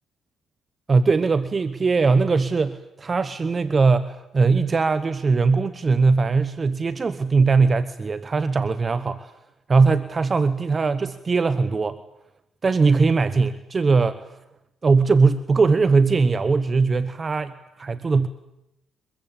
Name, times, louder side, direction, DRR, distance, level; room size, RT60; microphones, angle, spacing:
voice 1, 0.9-9.3 9.7-12.0 12.6-14.3 14.8-18.3, right 4 dB, 35° right, 13 dB, 1.1 m, -20 dB
24.0 x 22.0 x 8.8 m, 0.88 s
cardioid pair, 90°, 0 cm